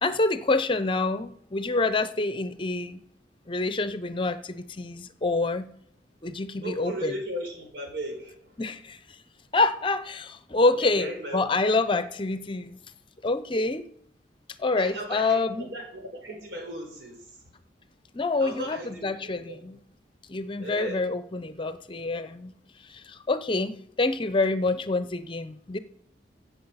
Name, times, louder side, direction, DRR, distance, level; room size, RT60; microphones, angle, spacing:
voice 1, 0.0-3.0 3.5-5.7 6.2-7.1 8.6-9.0 9.5-12.8 13.2-13.9 14.6-15.6 18.1-19.8 20.3-22.5 22.9-25.8, left 3 dB, 30° left, 12 dB, 0.6 m, -27 dB
voice 2, 6.6-8.5 10.7-11.5 14.8-17.4 18.4-19.6 20.6-21.0, equal, 80° right, 2 dB, 4.2 m, -36 dB
16.0 x 7.2 x 5.6 m, 0.70 s
head